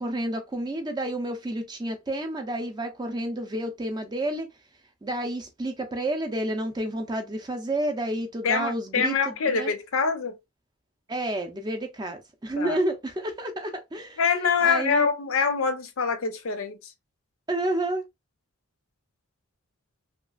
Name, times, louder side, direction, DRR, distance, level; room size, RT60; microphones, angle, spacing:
voice 1, 0.0-4.5 5.0-9.7 11.1-14.2 14.6-15.1 17.5-18.0, right 1 dB, 20° right, 0.4 m, -30 dB
voice 2, 8.4-10.3 12.6-12.8 14.2-16.8, left 5 dB, 75° left, 0.6 m, -25 dB
2.9 x 2.3 x 2.3 m
head